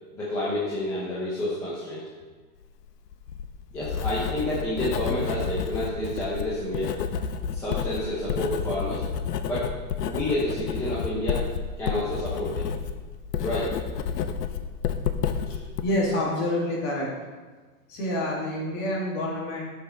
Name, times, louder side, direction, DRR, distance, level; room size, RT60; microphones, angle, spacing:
voice 1, 0.1-2.1 3.7-7.0 7.5-9.1 9.5-9.7 10.0-11.5 11.8-12.7 13.4-13.7, left 1 dB, 5° left, -9 dB, 0.8 m, -29 dB
Writing, 3.1-15.8, left 7 dB, 85° left, 1.0 m, -30 dB
voice 2, 15.4-17.1 17.9-19.6, left 1 dB, 30° left, -4 dB, 2.7 m, -28 dB
11.5 x 6.4 x 4.5 m, 1.4 s
supercardioid pair, 175°, 46 cm